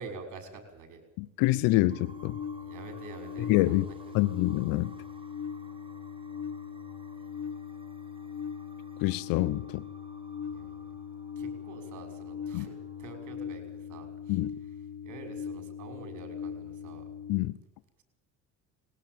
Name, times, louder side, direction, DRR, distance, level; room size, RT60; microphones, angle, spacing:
voice 1, 0.0-1.0 2.6-4.2 10.5-10.8 11.4-14.4 15.0-17.0, right 4 dB, 60° right, 6 dB, 6.0 m, -47 dB
voice 2, 1.2-2.4 3.5-3.9 4.1-4.9 9.0-9.8 12.5-12.7 14.3-14.5 17.3-17.5, left 18 dB, 85° left, 17 dB, 0.9 m, -26 dB
sound 1, 1.5-17.4, left 7 dB, 45° left, 1.8 m, -40 dB
sound 2, 1.9-13.4, right 2 dB, 15° right, 3.0 m, -56 dB
20.0 x 17.5 x 9.4 m, 0.86 s
supercardioid pair, 90°, 35 cm